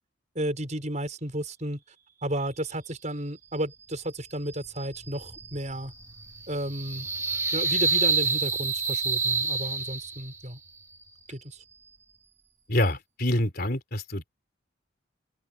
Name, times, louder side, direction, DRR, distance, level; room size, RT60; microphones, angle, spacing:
voice 1, 0.3-1.8 2.2-5.9 6.5-7.1 7.5-10.6 11.3-11.6, right 1 dB, 35° right, 6.5 m, -33 dB
sound 1, 4.5-10.4, right 4 dB, 15° right, 2.3 m, -29 dB
voice 2, 12.7-14.3, left 1 dB, 50° left, 4.0 m, -26 dB
head